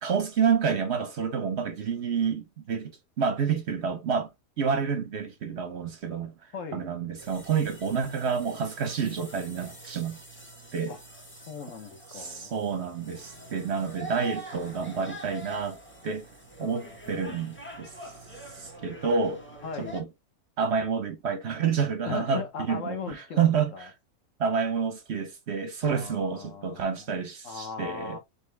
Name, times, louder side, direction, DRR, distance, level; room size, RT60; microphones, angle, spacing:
voice 1, 0.0-4.3 4.6-6.3 6.7-10.2 10.7-11.0 12.1-15.8 16.0-16.3 16.6-18.1 18.5-19.4 19.8-20.1 20.6-23.9 24.4-28.2, right 6 dB, 55° right, 0.8 m, -29 dB
voice 2, 6.5-6.9 10.9-11.0 11.5-12.5 16.6-16.8 17.0-17.4 19.6-20.0 22.0-23.9 25.8-27.1 27.4-28.2, left 6 dB, 60° left, 1.2 m, -38 dB
Mercado de Carne, 7.2-20.0, right 1 dB, 10° left, 1.0 m, -45 dB
4.1 x 3.5 x 3.3 m
omnidirectional pair, 1.6 m